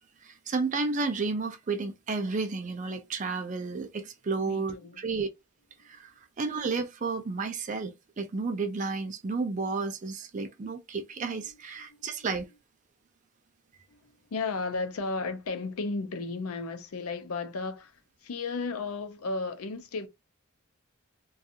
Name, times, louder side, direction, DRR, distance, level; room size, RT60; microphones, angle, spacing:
voice 1, 0.2-5.3 5.8-6.1 6.4-12.5, right 4 dB, 35° right, 0.4 m, -32 dB
voice 2, 4.4-5.0 11.4-11.5 11.9-12.2 13.9-14.0 14.3-20.1, left 3 dB, 90° left, 0.5 m, -34 dB
2.4 x 2.3 x 2.7 m
head